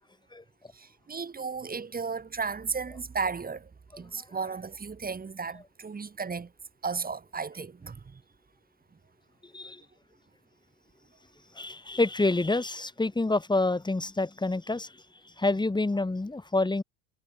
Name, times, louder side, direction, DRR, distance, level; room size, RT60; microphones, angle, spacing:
voice 1, 0.7-3.7 4.0-6.5 6.8-8.2, right 5 dB, 20° right, 7.9 m, -34 dB
voice 2, 11.5-15.0 15.2-16.8, left 2 dB, 10° left, 7.7 m, -27 dB
hypercardioid pair, 80°, 42 cm